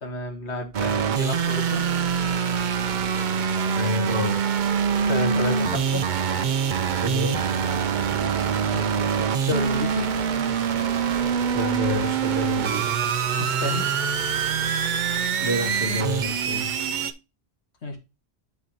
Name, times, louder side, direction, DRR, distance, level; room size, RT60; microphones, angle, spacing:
voice 1, 0.0-1.8 5.0-6.1 8.7-10.1 13.4-13.9 17.8-18.0, left 2 dB, 75° left, 1.8 m, -31 dB
sound 1, 0.7-17.1, right 7 dB, 55° right, 0.6 m, -24 dB
voice 2, 3.7-4.5 7.0-7.5 11.5-12.9 15.4-16.7, left 2 dB, 25° right, 2.3 m, -28 dB
10.5 x 4.0 x 2.8 m
omnidirectional pair, 1.2 m